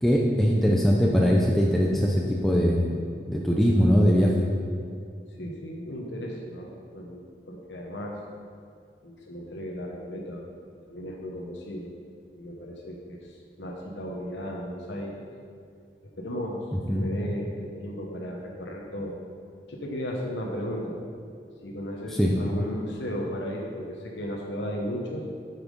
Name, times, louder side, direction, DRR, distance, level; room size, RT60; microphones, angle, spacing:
voice 1, 0.0-3.0 3.3-4.3 16.9-17.1 22.1-22.3, equal, ahead, -3 dB, 0.5 m, -21 dB
voice 2, 5.4-8.2 9.0-10.5 10.8-11.9 12.3-15.2 16.2-16.6 16.9-19.1 19.7-21.0 21.6-25.2, equal, 85° left, -1 dB, 1.1 m, -35 dB
8.4 x 5.9 x 5.2 m, 2.3 s
head